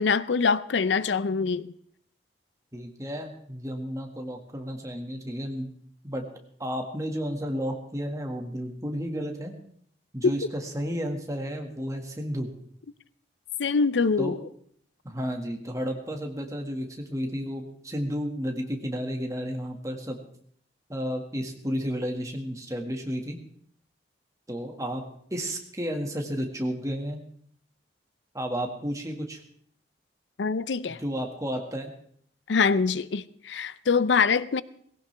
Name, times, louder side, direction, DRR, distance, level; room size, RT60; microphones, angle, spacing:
voice 1, 0.0-1.7 13.6-14.4 30.4-31.0 32.5-34.6, left 5 dB, 90° left, 0.5 m, -24 dB
voice 2, 2.7-5.7 6.0-6.3 6.6-9.5 10.1-12.5 14.2-14.4 15.0-20.2 20.9-23.4 24.5-25.0 25.3-27.2 28.3-29.4 30.9-31.9, equal, 20° right, 1.8 m, -32 dB
18.5 x 17.0 x 3.4 m
head